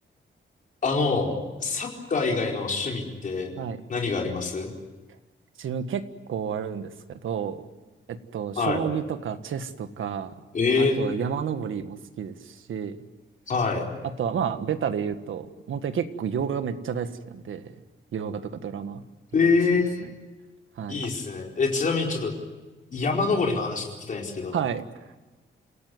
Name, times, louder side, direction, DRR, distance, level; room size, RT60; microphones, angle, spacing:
voice 1, 0.8-1.3 1.6-3.5 3.9-4.7 8.6-8.8 10.5-11.0 13.5-13.8 19.3-20.0 20.9-22.3 22.9-24.6, left 4 dB, 40° left, 0 dB, 4.6 m, -25 dB
voice 2, 5.6-6.0 6.3-7.6 8.1-10.3 10.8-13.0 14.2-17.7 18.1-19.0 20.0-20.1 20.8-21.1 24.5-24.8, right 7 dB, 80° right, 9 dB, 1.7 m, -30 dB
28.5 x 17.5 x 9.4 m, 1.2 s
wide cardioid pair, 170°, 20 cm